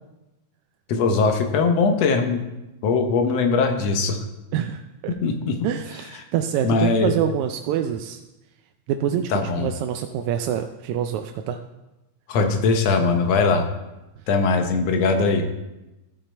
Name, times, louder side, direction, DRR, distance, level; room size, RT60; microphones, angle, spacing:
voice 1, 0.9-2.4 2.8-4.2 5.2-5.6 6.6-7.1 9.3-9.7 12.3-13.7 14.3-15.5, left 4 dB, 70° left, 5 dB, 1.9 m, -20 dB
voice 2, 4.5-5.2 5.6-8.2 8.9-11.6, right 9 dB, 85° right, 6 dB, 1.9 m, -26 dB
14.0 x 5.5 x 4.3 m, 1.0 s
omnidirectional pair, 3.3 m